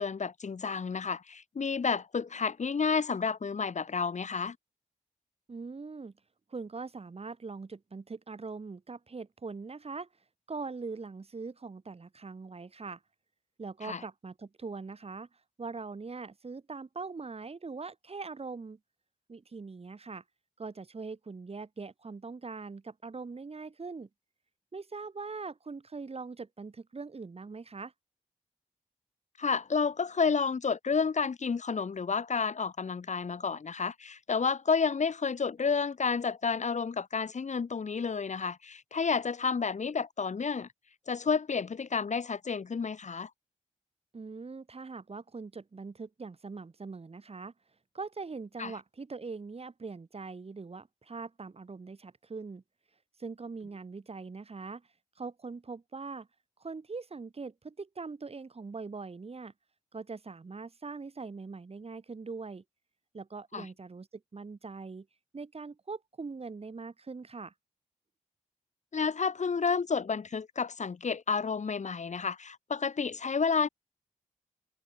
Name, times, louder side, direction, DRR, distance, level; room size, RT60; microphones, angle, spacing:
voice 1, 0.0-4.6 13.8-14.0 29.4-40.7 41.1-43.3 48.6-48.7 63.5-63.7 68.9-73.7, left 5 dB, 55° left, 2.7 m, -30 dB
voice 2, 5.5-6.1 6.5-10.1 10.5-13.0 13.6-15.3 15.6-18.8 19.3-20.2 20.6-24.1 24.7-27.9 44.1-47.5 47.9-52.6 53.2-54.9 55.2-56.3 56.6-59.5 59.9-62.6 63.1-65.1 65.3-67.5, right 4 dB, 45° right, 5.0 m, -42 dB
cardioid pair, 70°, 14 cm